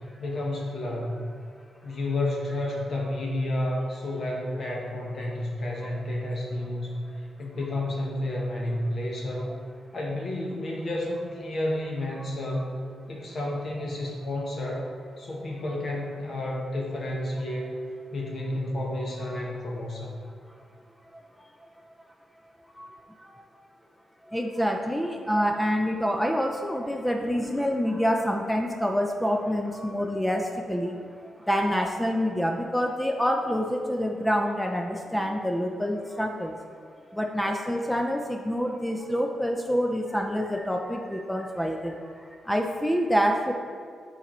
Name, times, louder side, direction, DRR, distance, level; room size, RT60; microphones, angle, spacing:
voice 1, 0.2-1.2 1.8-9.6 9.9-12.7 13.1-14.9 15.2-17.8 18.1-20.2, left 1 dB, 45° left, -2 dB, 0.8 m, -31 dB
voice 2, 24.3-36.6 37.1-42.0 42.4-43.5, equal, 5° left, 2 dB, 0.3 m, -27 dB
8.2 x 4.2 x 3.0 m, 2.1 s
wide cardioid pair, 140°, 0 cm